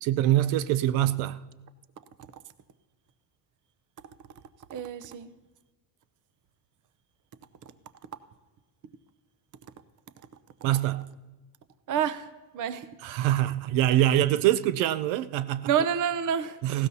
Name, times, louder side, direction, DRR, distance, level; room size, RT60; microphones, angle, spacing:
voice 1, 0.0-1.4 10.6-11.1 13.0-15.7 16.6-16.9, right 13 dB, 85° right, 0.6 m, -24 dB
voice 2, 4.7-5.3 11.9-12.3 12.5-12.9 15.7-16.6, right 8 dB, 45° right, 0.7 m, -28 dB
18.5 x 16.5 x 2.7 m
cardioid pair, 125°, 45 cm